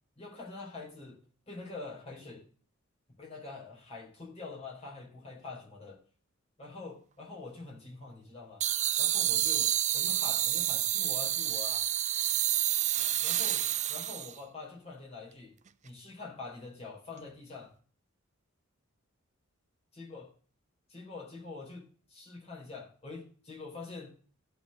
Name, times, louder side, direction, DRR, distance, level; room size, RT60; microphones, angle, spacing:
voice 1, 0.2-1.2 1.5-2.4 3.2-6.0 6.6-8.7 9.0-11.9 13.2-13.6 13.9-15.5 15.8-17.7 20.0-20.3 20.9-24.1, left 3 dB, 30° left, 4.2 m, -45 dB
sound 1, 8.6-14.4, right 12 dB, 35° right, 0.4 m, -29 dB
14.0 x 4.8 x 6.6 m
head